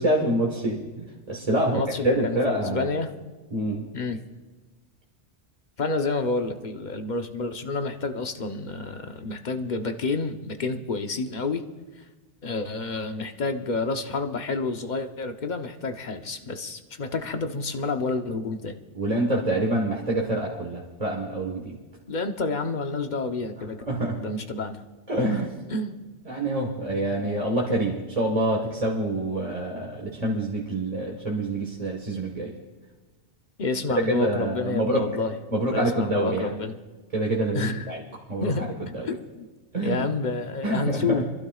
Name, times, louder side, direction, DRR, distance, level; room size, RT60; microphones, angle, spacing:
voice 1, 0.0-2.9 3.5-3.8 18.9-21.7 23.9-24.2 25.1-25.5 26.3-32.5 33.9-35.0 35.5-36.5 37.1-38.0 38.3-38.5 38.9-39.1 39.7-40.0 40.6-41.2, right 1 dB, 35° right, -2 dB, 1.5 m, -26 dB
voice 2, 1.7-3.1 3.9-4.2 5.8-11.6 12.4-18.8 22.1-23.8 24.2-24.8 25.7-26.0 33.6-35.4 35.7-36.7 37.5-38.0 38.4-38.7 39.0-39.4 39.8-41.2, left 3 dB, 45° left, 6 dB, 1.0 m, -29 dB
29.5 x 12.0 x 2.4 m, 1.3 s
omnidirectional pair, 1.2 m